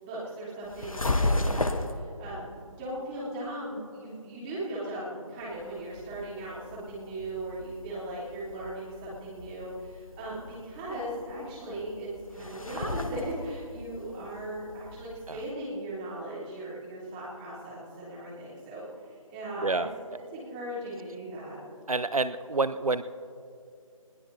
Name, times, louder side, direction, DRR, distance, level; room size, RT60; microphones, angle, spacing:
voice 1, 0.0-19.8 20.1-21.6, right 1 dB, 15° right, -8 dB, 3.6 m, -38 dB
sound 1, 0.6-2.0 5.4-15.5, left 2 dB, 75° left, 1.2 m, -35 dB
voice 2, 21.9-23.0, right 3 dB, 80° right, 14 dB, 0.6 m, -28 dB
21.0 x 17.5 x 2.8 m, 2.4 s
figure-of-eight pair, 155°, 18 cm